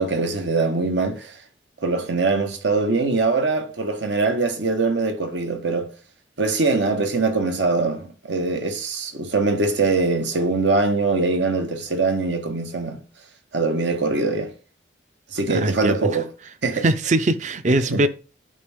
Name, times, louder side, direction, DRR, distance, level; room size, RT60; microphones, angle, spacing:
voice 1, 0.0-1.4 1.8-5.9 6.4-13.0 13.5-14.5 15.3-16.3 16.6-16.8 17.8-18.0, right 3 dB, 80° right, 1.2 m, -22 dB
voice 2, 15.5-16.0 16.8-18.1, right 2 dB, 40° right, 0.5 m, -21 dB
10.5 x 4.3 x 3.5 m
head